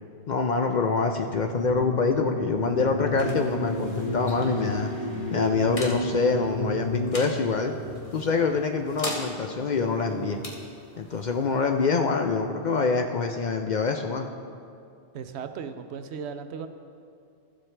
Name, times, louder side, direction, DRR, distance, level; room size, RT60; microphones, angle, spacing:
voice 1, 0.3-4.9 5.3-7.7 8.1-10.4 11.0-14.3, left 4 dB, 55° left, 4 dB, 0.5 m, -25 dB
sound 1, 1.2-10.3, left 1 dB, 35° right, 2.3 m, -33 dB
sound 2, 2.4-13.7, left 1 dB, 30° left, 1.3 m, -43 dB
voice 2, 15.1-16.7, right 6 dB, 75° right, 9 dB, 0.9 m, -36 dB
14.0 x 7.5 x 3.3 m, 2.4 s
omnidirectional pair, 1.1 m